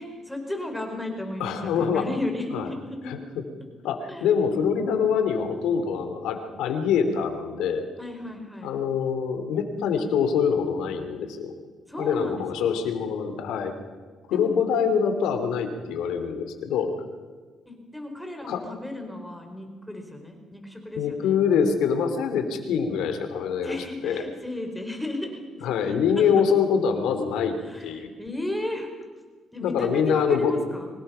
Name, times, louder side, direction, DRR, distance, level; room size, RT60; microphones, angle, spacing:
voice 1, 0.0-3.3 4.1-4.3 8.0-8.7 11.9-12.8 14.3-14.5 17.7-21.4 23.6-26.3 27.6-28.9 29.5-30.9, left 1 dB, 5° left, 4 dB, 4.5 m, -34 dB
voice 2, 1.4-2.1 2.5-2.7 3.1-3.4 3.8-7.8 8.6-11.5 12.0-13.7 14.3-16.9 18.5-18.6 20.9-24.2 25.6-27.6 27.8-28.1 29.6-30.5, left 7 dB, 90° left, 7 dB, 3.0 m, -25 dB
24.5 x 19.0 x 5.7 m, 1.5 s
cardioid pair, 90°, 0 cm